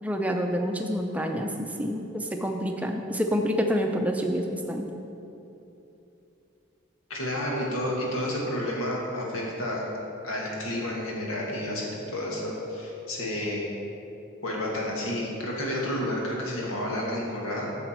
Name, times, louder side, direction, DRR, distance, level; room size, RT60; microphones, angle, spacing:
voice 1, 0.0-4.8, equal, 5° right, 3 dB, 0.5 m, -28 dB
voice 2, 7.1-9.9 10.2-13.7 14.4-17.7, left 1 dB, 90° left, -3 dB, 1.9 m, -30 dB
9.4 x 6.9 x 4.4 m, 2.9 s
head